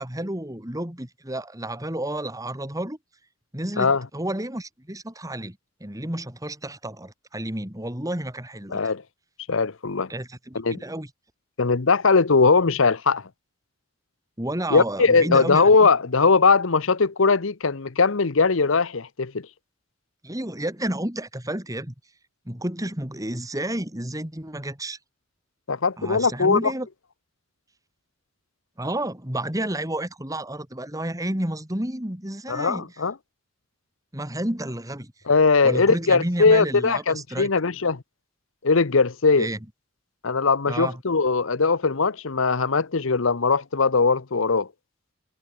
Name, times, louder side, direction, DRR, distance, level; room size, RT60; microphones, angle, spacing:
voice 1, 0.0-3.0 3.5-8.8 10.1-11.1 14.4-15.9 20.2-21.9 22.5-25.0 26.0-26.9 28.8-32.9 34.1-35.1 35.6-37.5 39.4-39.6 40.7-41.0, right 1 dB, 15° right, 3.0 m, -31 dB
voice 2, 8.7-9.0 9.5-10.1 10.5-10.8 11.6-13.2 14.7-19.5 25.7-26.7 32.5-33.1 35.3-38.0 38.6-39.5 40.2-44.7, left 4 dB, 65° left, 0.9 m, -20 dB
head